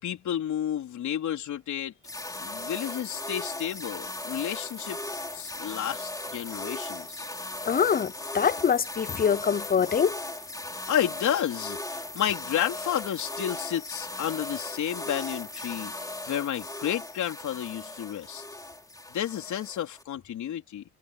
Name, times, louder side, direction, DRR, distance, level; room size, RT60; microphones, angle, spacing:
voice 1, 0.0-1.9 2.4-5.0 5.3-7.3 10.9-15.9 16.3-18.4 19.1-20.8, left 10 dB, 70° left, 4.0 m, -31 dB
sound 1, 2.0-20.0, left 2 dB, 10° left, 3.1 m, -37 dB
voice 2, 7.7-10.2, left 7 dB, 30° left, 0.6 m, -24 dB
cardioid pair, 90°, 30 cm